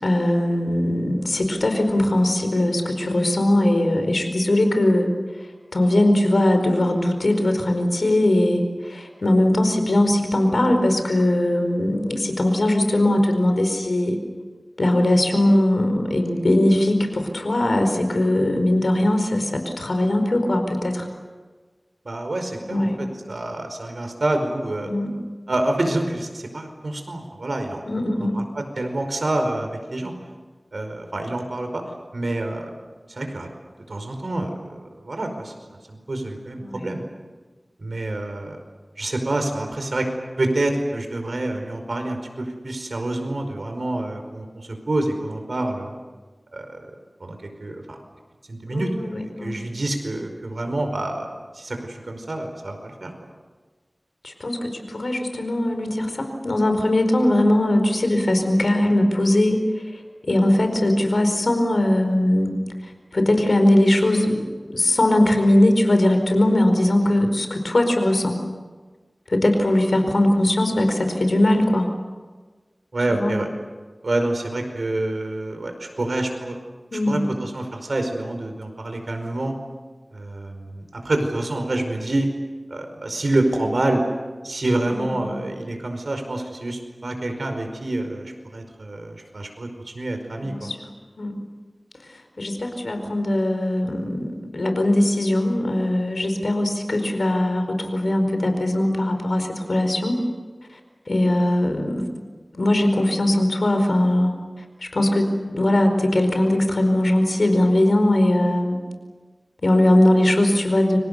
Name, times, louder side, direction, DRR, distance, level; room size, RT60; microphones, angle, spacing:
voice 1, 0.0-5.1 5.4-14.2 14.8-21.1 22.7-23.0 24.9-25.1 27.8-28.4 36.6-36.9 48.7-49.5 54.2-59.6 59.9-62.6 63.1-68.4 69.3-71.9 73.1-73.3 76.9-77.2 84.9-85.4 90.4-90.8 91.2-91.3 92.4-100.2 101.1-102.1 102.5-104.3 104.8-108.8 109.6-111.0, left 1 dB, 90° left, 6 dB, 4.7 m, -20 dB
voice 2, 22.0-24.9 25.5-27.8 28.1-30.1 30.7-31.8 32.1-32.6 33.1-33.5 33.9-35.5 35.9-37.0 37.8-38.6 39.0-40.1 40.4-45.9 46.5-46.9 47.2-48.0 48.5-48.9 49.2-51.3 51.5-53.1 67.2-67.3 72.9-73.5 74.0-76.6 77.1-79.5 80.1-82.3 82.7-84.0 84.4-90.7, right 2 dB, 85° right, 5 dB, 5.0 m, -27 dB
29.5 x 25.5 x 6.9 m, 1.4 s
wide cardioid pair, 55°, 0 cm